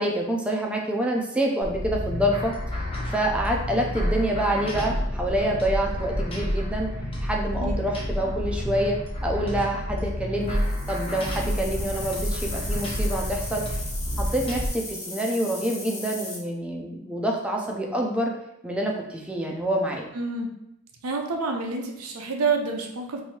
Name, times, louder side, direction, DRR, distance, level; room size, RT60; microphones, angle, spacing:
voice 1, 0.0-2.5 3.1-6.9 7.2-10.6 10.9-13.6 14.2-18.3 18.6-20.1, right 1 dB, 5° right, 0 dB, 0.5 m, -27 dB
sound 1, 1.6-14.7, equal, 25° left, 0.8 m, -29 dB
sound 2, 10.4-16.4, left 2 dB, 70° left, 1.4 m, -38 dB
voice 2, 20.1-20.5 21.0-23.2, right 4 dB, 85° right, 2 dB, 0.7 m, -28 dB
3.1 x 2.7 x 4.3 m, 0.87 s
head